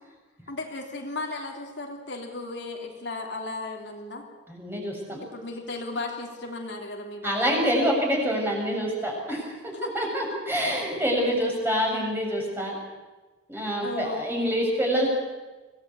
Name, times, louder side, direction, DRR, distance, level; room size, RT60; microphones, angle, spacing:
voice 1, 0.5-4.2 5.1-7.6 9.8-10.1 10.6-10.9 13.8-14.2, left 2 dB, 60° left, 1 dB, 3.2 m, -35 dB
voice 2, 4.5-5.2 7.2-12.8 13.5-15.1, equal, 10° right, -1 dB, 6.7 m, -26 dB
25.5 x 18.0 x 8.4 m, 1.2 s
head